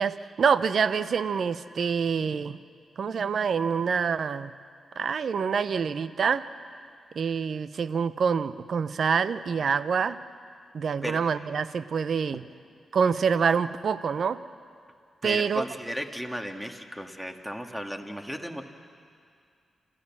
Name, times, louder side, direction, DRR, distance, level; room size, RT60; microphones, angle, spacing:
voice 1, 0.0-2.6 3.0-4.5 5.0-6.4 7.2-10.2 10.7-12.4 12.9-14.4 15.2-15.6, right 6 dB, 65° right, 15 dB, 0.7 m, -26 dB
voice 2, 15.2-18.7, equal, 5° right, 4 dB, 2.2 m, -35 dB
28.0 x 14.5 x 7.5 m, 2.2 s
supercardioid pair, 40°, 0 cm